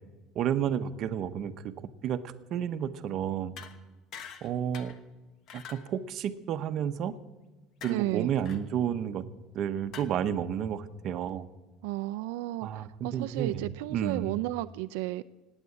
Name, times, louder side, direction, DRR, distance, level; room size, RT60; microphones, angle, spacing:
voice 1, 0.3-1.7 2.0-3.5 4.4-4.9 5.5-7.1 7.8-9.2 9.5-11.5 12.6-14.4, right 9 dB, 40° right, 10 dB, 0.8 m, -31 dB
sound 1, 3.6-3.8 4.1-4.5 4.7-5.0 5.5-5.9 7.8-8.0 8.4-8.6 9.9-10.0, left 7 dB, 40° left, 1.2 m, -44 dB
voice 2, 7.8-8.3 11.8-15.2, right 17 dB, 90° right, 10 dB, 0.4 m, -33 dB
18.5 x 9.0 x 8.4 m, 1.1 s
cardioid pair, 160°, 0 cm